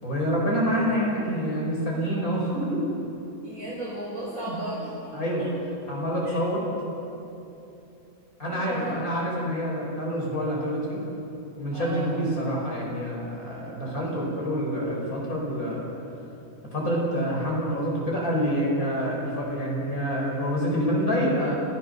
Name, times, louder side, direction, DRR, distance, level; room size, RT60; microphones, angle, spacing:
voice 1, 0.0-2.8 4.5-4.6 5.1-5.5 5.9-6.6 8.4-11.0 11.6-15.9 16.7-21.5, equal, 75° left, -3 dB, 6.1 m, -27 dB
voice 2, 3.4-5.1 6.2-6.4 8.5-9.0 11.7-12.2, right 1 dB, 65° right, -7 dB, 5.6 m, -35 dB
29.5 x 14.5 x 6.8 m, 2.9 s
omnidirectional pair, 1.5 m